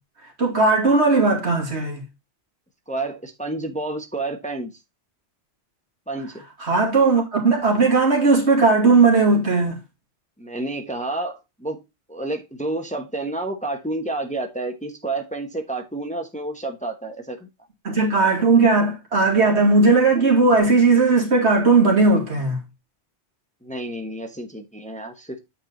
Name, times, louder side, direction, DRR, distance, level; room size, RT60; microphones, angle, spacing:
voice 1, 0.4-2.1 6.6-9.8 17.8-22.6, right 3 dB, 70° right, 2.8 m, -17 dB
voice 2, 2.9-4.7 6.1-6.4 10.4-11.8 12.1-17.4 23.6-25.4, right 2 dB, 5° left, 1.1 m, -30 dB
8.6 x 4.8 x 3.9 m
omnidirectional pair, 1.2 m